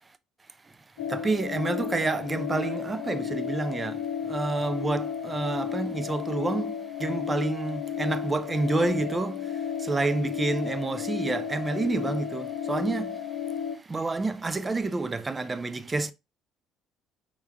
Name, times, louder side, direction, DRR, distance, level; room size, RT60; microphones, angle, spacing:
sound 1, 1.0-13.8, left 8 dB, 75° left, 0.8 m, -33 dB
voice 1, 1.1-4.0 4.3-9.4 9.8-13.2 13.9-16.1, right 3 dB, 25° right, 0.5 m, -29 dB
5.6 x 3.7 x 2.3 m
figure-of-eight pair, 50°, 0 cm